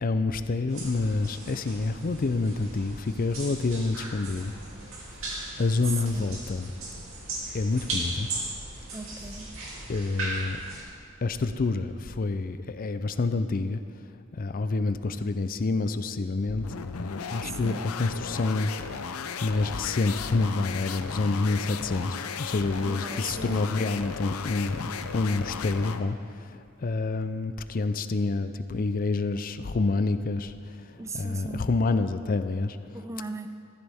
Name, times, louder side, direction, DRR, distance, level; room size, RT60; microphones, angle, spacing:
voice 1, 0.0-4.5 5.6-6.7 7.5-8.3 9.9-10.6 11.2-13.8 14.3-16.6 17.0-18.8 19.4-32.8, left 3 dB, 40° left, 11 dB, 0.4 m, -28 dB
sound 1, 0.7-10.8, right 2 dB, 65° right, 3.0 m, -37 dB
voice 2, 5.9-6.4 8.9-9.6 17.5-17.9 22.8-23.9 31.0-31.7 32.9-33.5, right 3 dB, 15° right, 8 dB, 0.4 m, -38 dB
sound 2, 16.5-26.1, left 6 dB, 90° left, 0.6 m, -36 dB
14.5 x 13.5 x 3.5 m, 2.5 s
head